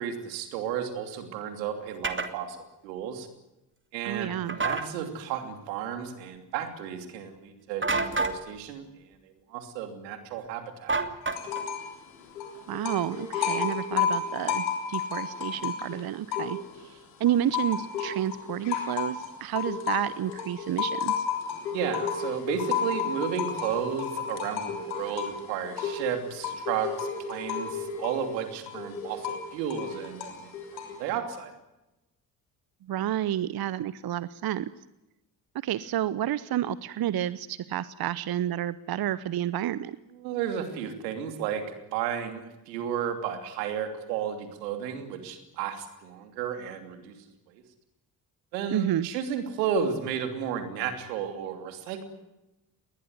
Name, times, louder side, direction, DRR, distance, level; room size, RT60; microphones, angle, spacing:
voice 1, 0.0-3.3 3.9-8.8 9.2-11.0 21.7-30.5 30.9-31.5 40.1-41.6 41.9-47.1 47.5-47.6 48.5-52.0, right 8 dB, 80° right, 8 dB, 3.0 m, -33 dB
sound 1, 2.0-2.3 4.5-4.9 7.8-8.4 10.9-11.7, right 3 dB, 25° right, 2.8 m, -28 dB
voice 2, 4.0-4.6 12.7-21.3 32.8-34.7 35.6-40.0 48.7-49.1, right 11 dB, 45° right, 18 dB, 0.9 m, -30 dB
sound 2, 11.3-11.9 12.2-16.9 17.3-31.1, left 6 dB, 85° left, 3.7 m, -32 dB
20.5 x 20.0 x 9.6 m, 0.96 s
figure-of-eight pair, 45°, 50 cm